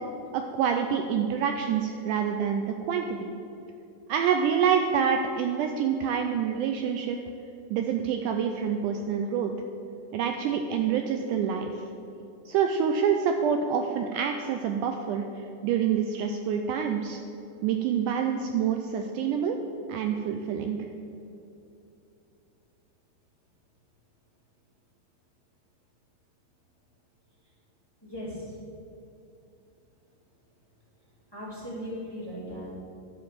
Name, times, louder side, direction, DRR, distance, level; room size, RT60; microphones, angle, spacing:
voice 1, 0.3-3.3 4.1-7.2 7.7-9.5 10.1-11.8 12.5-17.2 17.6-19.6 19.9-20.8, right 7 dB, 80° right, 5 dB, 1.9 m, -27 dB
voice 2, 28.0-28.6 31.3-32.8, equal, 10° left, -7 dB, 1.8 m, -38 dB
10.5 x 5.2 x 7.4 m, 2.7 s
omnidirectional pair, 4.0 m